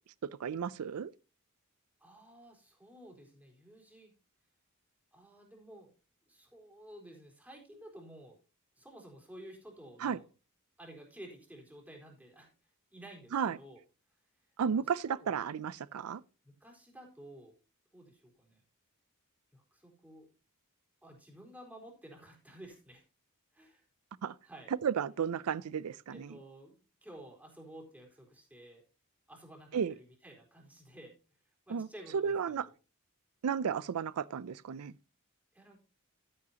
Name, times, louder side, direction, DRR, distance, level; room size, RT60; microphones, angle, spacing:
voice 1, 0.4-1.1 10.0-10.2 13.3-13.6 14.6-16.2 24.2-24.3 24.8-26.3 29.7-29.9 31.7-31.9 32.1-32.7 33.4-34.9, right 7 dB, 85° right, 0.4 m, -33 dB
voice 2, 2.0-4.1 5.1-5.9 6.3-8.4 8.8-10.3 10.8-12.5 12.9-13.8 14.7-15.3 16.4-17.5 17.9-18.6 19.5-20.3 21.0-23.0 23.5-23.8 24.4-24.7 26.1-28.8 29.3-31.1 31.7-32.7 35.5-35.8, right 1 dB, 5° right, 3.9 m, -53 dB
12.0 x 9.8 x 2.9 m
head